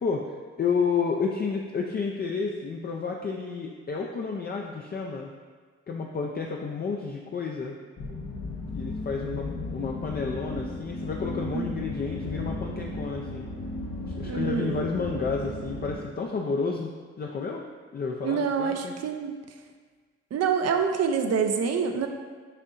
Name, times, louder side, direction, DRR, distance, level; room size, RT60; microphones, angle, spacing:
voice 1, 0.0-5.3 5.9-7.8 8.7-13.5 14.1-17.6 17.9-18.9, left 5 dB, 30° left, 0 dB, 0.4 m, -31 dB
sound 1, 8.0-16.0, left 2 dB, 65° left, 0.9 m, -35 dB
voice 2, 11.5-11.9 14.3-14.8 18.2-19.4 20.3-22.1, right 6 dB, 55° right, 5 dB, 0.5 m, -26 dB
6.5 x 2.6 x 2.5 m, 1.5 s
supercardioid pair, 45°, 31 cm